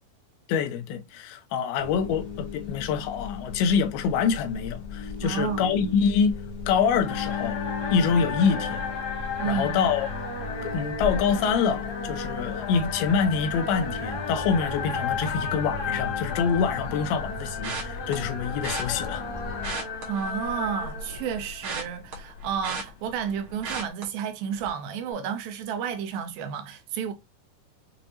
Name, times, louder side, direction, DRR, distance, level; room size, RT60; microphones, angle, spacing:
voice 1, 0.5-7.6 7.9-8.9 9.4-10.1 10.6-19.3, left 6 dB, 90° left, 2.6 m, -26 dB
sound 1, 1.8-19.7, left 4 dB, 40° left, 1.3 m, -36 dB
voice 2, 5.2-5.6 9.4-9.8 20.1-27.1, right 8 dB, 85° right, 2.4 m, -31 dB
sound 2, 7.0-23.9, left 5 dB, 60° left, 2.1 m, -34 dB
sound 3, 17.6-18.1 18.6-18.8 19.5-20.8 21.1-23.3 23.6-24.0 24.5-24.8 25.1-25.2, right 4 dB, 70° right, 1.2 m, -35 dB
6.7 x 2.6 x 2.8 m
omnidirectional pair, 4.3 m